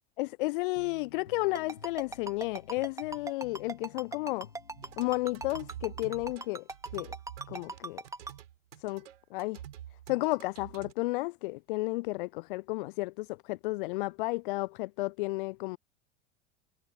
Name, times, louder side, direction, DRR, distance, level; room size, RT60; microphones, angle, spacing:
voice 1, 0.2-4.5 5.0-6.7 6.9-7.1 7.5-8.0 8.8-9.6 10.1-15.8, left 22 dB, 45° left, 0.5 m, -32 dB
sound 1, 0.8-6.1, left 7 dB, 75° left, 2.6 m, -55 dB
Ringtone, 1.6-8.3, right 3 dB, 10° right, 2.4 m, -39 dB
sound 2, 4.8-10.9, right 11 dB, 65° right, 4.6 m, -47 dB
figure-of-eight pair, 80°, 38 cm